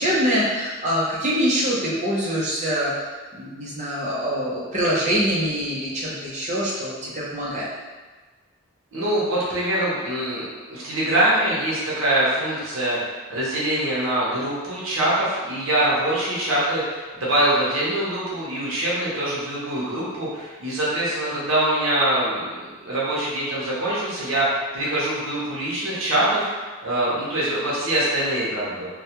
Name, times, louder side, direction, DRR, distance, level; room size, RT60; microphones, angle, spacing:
voice 1, 0.0-2.9 3.3-7.7, equal, 35° right, -6 dB, 0.5 m, -24 dB
voice 2, 8.9-22.5 22.8-28.9, right 1 dB, 75° right, -7 dB, 0.7 m, -24 dB
2.2 x 2.1 x 2.8 m, 1.3 s
head